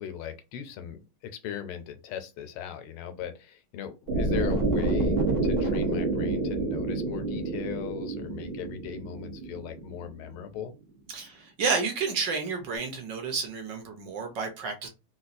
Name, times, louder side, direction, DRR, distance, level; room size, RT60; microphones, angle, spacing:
voice 1, 0.0-10.7, left 9 dB, 85° left, 1.5 m, -39 dB
sound 1, 4.1-10.2, right 2 dB, 90° right, 0.5 m, -28 dB
voice 2, 11.1-14.9, right 4 dB, 65° right, 1.4 m, -30 dB
4.0 x 2.3 x 2.5 m
omnidirectional pair, 2.3 m